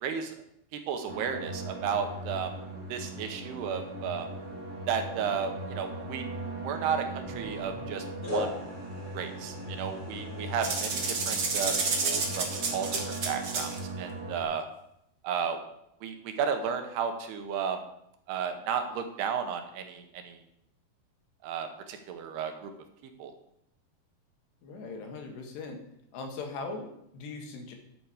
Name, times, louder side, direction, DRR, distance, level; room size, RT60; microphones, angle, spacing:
voice 1, 0.0-0.4 0.9-2.5 2.9-4.3 4.9-6.2 6.6-8.5 9.1-14.7 15.2-15.6 16.0-17.8 18.3-20.4 21.4-22.7 23.2-23.3, right 7 dB, 75° right, 6 dB, 3.0 m, -33 dB
sound 1, 1.1-14.4, right 2 dB, 20° right, 3.0 m, -39 dB
sound 2, 7.2-7.9 8.2-14.2, left 2 dB, 10° left, 4.0 m, -41 dB
voice 2, 10.1-10.4 24.6-25.8 26.1-27.7, left 3 dB, 85° left, 3 dB, 3.8 m, -40 dB
sound 3, 10.6-13.8, right 4 dB, 55° right, 1.2 m, -30 dB
12.0 x 8.1 x 5.0 m, 0.78 s
omnidirectional pair, 4.8 m